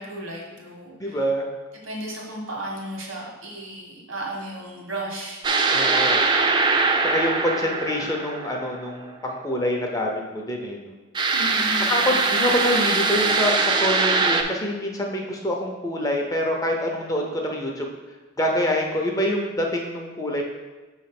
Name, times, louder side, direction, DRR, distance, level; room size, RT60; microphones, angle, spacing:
voice 1, 0.0-1.2 1.8-5.4 11.3-12.1 12.5-12.7, right 1 dB, 75° right, -2 dB, 1.7 m, -34 dB
voice 2, 1.0-1.5 5.7-6.2 7.0-10.9 11.9-17.9 18.4-20.4, left 1 dB, 15° left, 0 dB, 0.6 m, -26 dB
sound 1, 5.4-8.9 11.2-14.4, right 3 dB, 20° right, 0.3 m, -22 dB
6.3 x 3.2 x 5.8 m, 1.2 s
head